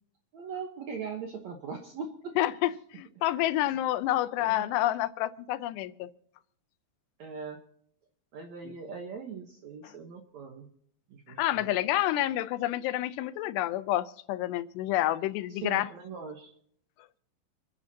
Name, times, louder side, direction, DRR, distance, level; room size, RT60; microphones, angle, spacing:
voice 1, 0.3-2.4 4.4-4.7 7.2-7.6 8.3-10.7 11.1-11.7 15.5-16.5, right 5 dB, 70° right, 1.7 m, -40 dB
voice 2, 2.4-6.1 8.6-8.8 9.8-9.9 11.4-15.9, left 14 dB, 85° left, 2.9 m, -29 dB
28.5 x 10.5 x 2.8 m
omnidirectional pair, 4.8 m